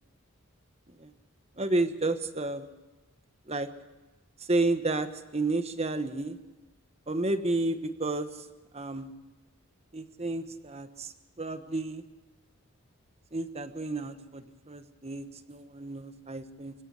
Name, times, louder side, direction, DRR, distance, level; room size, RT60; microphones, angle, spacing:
voice 1, 1.6-2.7 3.5-3.7 4.5-6.4 7.1-8.3 8.7-9.1 9.9-11.1 11.4-12.0 13.3-16.7, right 2 dB, 30° right, 10 dB, 1.2 m, -31 dB
25.0 x 16.5 x 6.4 m, 1.2 s
head